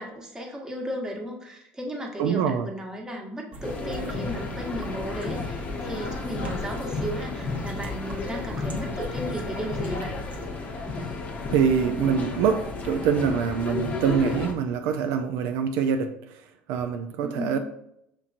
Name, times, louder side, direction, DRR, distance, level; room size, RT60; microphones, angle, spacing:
voice 1, 0.0-10.1 17.2-17.6, equal, 15° right, 1.1 m, -35 dB
voice 2, 2.2-2.7 11.5-17.6, right 7 dB, 70° right, 0.3 m, -25 dB
sound 1, 3.5-10.5, right 2 dB, 30° right, 0.7 m, -41 dB
sound 2, 3.6-14.5, left 3 dB, 30° left, 0.7 m, -32 dB
5.9 x 2.8 x 2.5 m
supercardioid pair, 100°, 5 cm